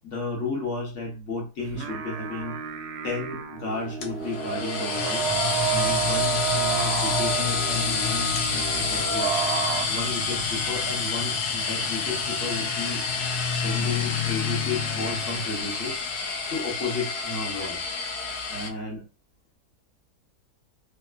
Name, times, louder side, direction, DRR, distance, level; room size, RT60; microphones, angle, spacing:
voice 1, 0.0-2.6 3.0-5.2 5.7-9.4 9.9-13.0 13.5-16.0 16.5-17.8 18.5-19.0, left 3 dB, 50° left, -1 dB, 1.3 m, -33 dB
sound 1, 1.6-9.9, right 9 dB, 75° right, 0.6 m, -31 dB
sound 2, 4.0-18.7, left 5 dB, 85° left, 1.2 m, -28 dB
3.3 x 2.8 x 2.3 m, 0.31 s
omnidirectional pair, 1.6 m